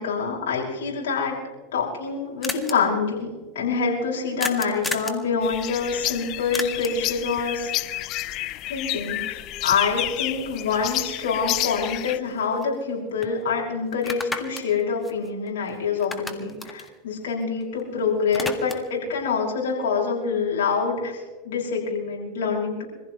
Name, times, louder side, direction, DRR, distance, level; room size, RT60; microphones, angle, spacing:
voice 1, 0.0-1.4 1.7-3.3 3.5-7.7 8.7-9.2 9.6-22.8, left 5 dB, 85° left, -4 dB, 5.7 m, -26 dB
sound 1, 1.5-1.6 1.7-1.8 2.0-2.1 2.4-2.7 4.4-5.2 6.5-7.1 11.3-11.4 11.8-12.9 13.2-13.3 13.9-15.7 16.0-17.8 18.1-19.0, left 3 dB, 15° left, 1.7 m, -33 dB
sound 2, 5.4-12.2, left 16 dB, 50° left, 0.7 m, -30 dB
26.0 x 15.5 x 3.1 m, 1.3 s
supercardioid pair, 110°, 0 cm